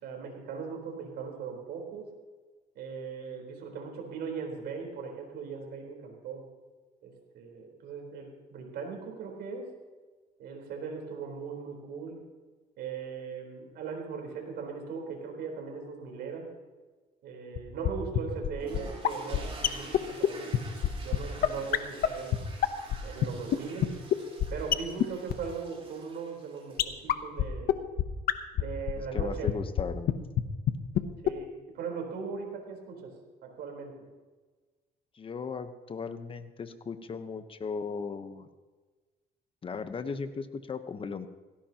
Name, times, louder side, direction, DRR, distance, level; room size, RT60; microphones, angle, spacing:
voice 1, 0.0-2.1 2.8-6.4 7.0-9.7 10.4-12.2 12.8-16.5 17.2-22.3 23.0-23.9 24.5-27.8 28.5-29.5 31.2-31.5 31.7-33.1 33.4-33.9, right 5 dB, 75° right, 1 dB, 4.1 m, -39 dB
sound 1, 17.5-17.6 17.8-17.9 18.1-18.2 18.4-18.5 18.7-18.8 19.0-19.1 19.3-19.4 19.6-19.7 19.9-20.0 20.2-20.3 20.5-20.6 20.8-20.9 21.1-21.2 21.4-21.5 21.7-21.8 22.0-22.1 22.3-22.4 22.6-22.9 23.2-23.3 23.5-23.6 23.8-23.9 24.1-24.2 24.4-24.5 24.7-24.8 25.0-25.1 25.3-25.4 26.8-26.9 27.1-27.2 27.4-27.5 27.7-27.8 28.0-28.1 28.3-28.4 28.6-28.7 28.9-29.2 29.5-29.6 29.8-29.9 30.1-30.2 30.4-30.5 30.7-30.8 30.9-31.0 31.3-31.4, left 11 dB, 60° left, 0.9 m, -23 dB
sound 2, 18.6-27.1, right 3 dB, 35° right, 3.5 m, -48 dB
voice 2, 29.0-30.2 35.1-38.5 39.6-41.3, left 5 dB, 30° left, 10 dB, 1.1 m, -37 dB
18.0 x 16.5 x 3.0 m, 1.3 s
cardioid pair, 110°, 17 cm